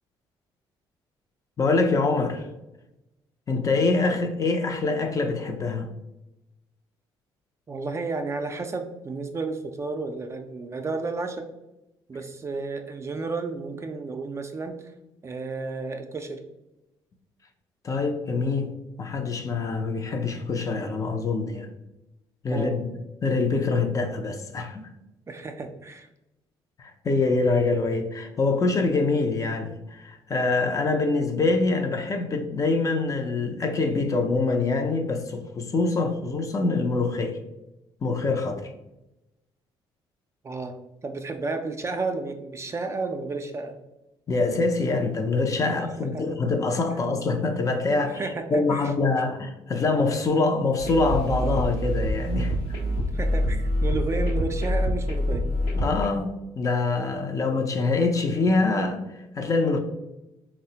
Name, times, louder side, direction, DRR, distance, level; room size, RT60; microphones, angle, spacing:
voice 1, 1.6-2.5 3.5-5.9 17.8-18.7 19.0-21.7 22.4-22.9 23.2-24.9 26.8-37.4 38.0-38.7 44.3-52.8 55.7-59.0 59.4-59.8, left 3 dB, 35° left, 5 dB, 0.4 m, -25 dB
voice 2, 7.7-11.4 12.1-14.8 15.2-16.4 22.5-22.8 25.3-26.1 40.4-43.8 45.7-46.2 47.9-48.9 52.8-55.5, right 3 dB, 30° right, 6 dB, 0.3 m, -32 dB
sound 1, 50.8-56.0, equal, 85° left, 0.8 m, -26 dB
3.4 x 2.0 x 2.7 m, 0.94 s
cardioid pair, 80°, 10 cm